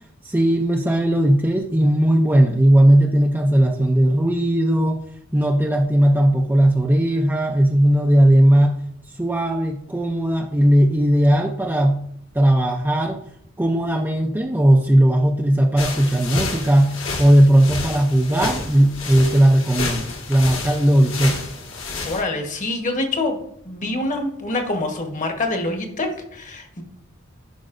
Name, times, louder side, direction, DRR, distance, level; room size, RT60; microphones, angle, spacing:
voice 1, 0.2-5.0 5.3-8.7 9.1-12.0 12.3-13.2 13.6-21.4, right 1 dB, 10° right, 0 dB, 0.5 m, -17 dB
sound 1, 15.8-22.2, left 3 dB, 75° left, 1.7 m, -30 dB
voice 2, 22.1-23.4 23.6-26.8, left 2 dB, 40° left, 4 dB, 1.2 m, -25 dB
10.5 x 5.1 x 2.5 m, 0.68 s
head